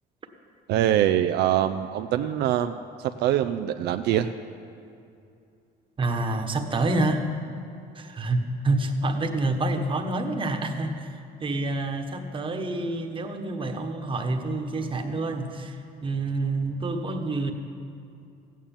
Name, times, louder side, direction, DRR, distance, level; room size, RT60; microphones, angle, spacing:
voice 1, 0.7-4.3, right 11 dB, 80° right, 8 dB, 0.5 m, -24 dB
voice 2, 6.0-7.3 7.9-17.5, right 2 dB, 30° right, 5 dB, 1.3 m, -28 dB
14.5 x 9.2 x 7.3 m, 2.5 s
cardioid pair, 110°, 17 cm